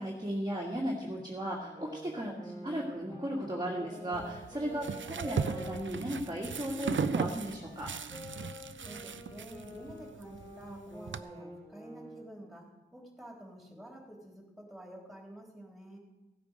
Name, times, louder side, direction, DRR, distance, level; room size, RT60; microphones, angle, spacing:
voice 1, 0.0-2.3 2.6-7.9, equal, 20° right, -3 dB, 1.8 m, -36 dB
sound 1, 1.5-6.9 7.4-12.3, equal, 15° left, 3.7 m, -48 dB
voice 2, 2.3-2.8 8.8-16.0, right 1 dB, ahead, 0 dB, 3.5 m, -50 dB
sound 2, 4.1-11.2, right 6 dB, 75° right, 0.5 m, -37 dB
15.5 x 8.4 x 5.2 m, 1.1 s
wide cardioid pair, 55°, 20 cm